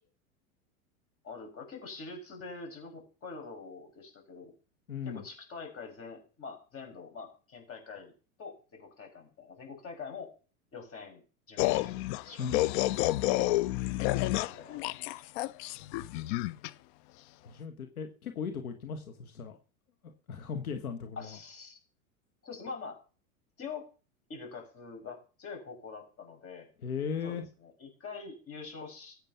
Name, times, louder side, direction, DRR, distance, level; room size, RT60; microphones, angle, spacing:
voice 1, 1.2-4.5 5.1-8.1 8.4-10.3 10.7-12.5 13.1-13.2 14.0-14.8 21.2-21.8 22.4-23.0 23.6-23.9 24.3-26.7 27.2-29.2, left 4 dB, 30° left, 3 dB, 6.2 m, -45 dB
voice 2, 4.9-5.2 17.4-19.6 20.3-21.4 26.8-27.4, left 6 dB, 85° left, 7 dB, 1.6 m, -38 dB
sound 1, 11.6-16.7, left 17 dB, 50° left, 0.6 m, -29 dB
14.0 x 8.9 x 5.7 m, 0.36 s
hypercardioid pair, 100°, 42 cm